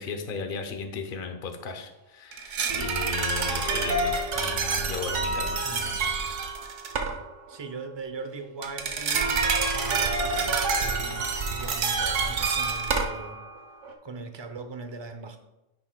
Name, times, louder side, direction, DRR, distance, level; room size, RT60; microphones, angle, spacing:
voice 1, 0.0-6.1, left 5 dB, 45° left, 6 dB, 0.9 m, -36 dB
sound 1, 2.3-7.2 8.6-13.6 13.8-13.9, right 4 dB, 60° right, 1.1 m, -27 dB
voice 2, 7.5-13.4 14.0-15.4, right 4 dB, 35° right, 6 dB, 0.4 m, -40 dB
9.9 x 7.1 x 2.3 m, 0.96 s
omnidirectional pair, 1.5 m